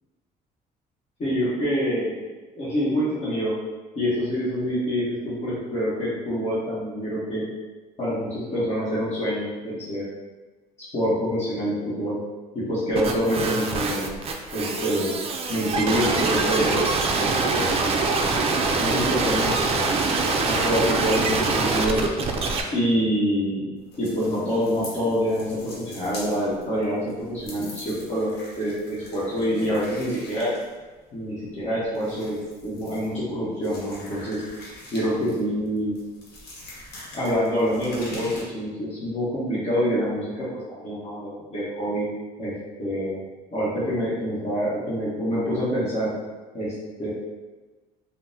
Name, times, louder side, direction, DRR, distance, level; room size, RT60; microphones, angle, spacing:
voice 1, 1.2-2.2 2.6-3.5 3.9-7.4 8.0-10.0 10.9-12.2 12.5-14.1 14.5-15.1 15.5-16.8 17.2-17.9 18.8-19.6 20.4-22.1 22.7-23.7 24.0-28.3 28.6-30.5 31.1-32.4 32.6-34.4 34.9-36.0 37.1-40.3 40.8-42.1 42.4-42.5 42.8-43.2 43.5-46.1 46.5-47.1, equal, 40° left, -10 dB, 1.0 m, -26 dB
sound 1, 12.9-22.6, right 3 dB, 35° right, 0.4 m, -24 dB
sound 2, 23.8-38.4, left 1 dB, 75° left, 1.0 m, -44 dB
3.5 x 2.0 x 2.7 m, 1.3 s
cardioid pair, 110°, 17 cm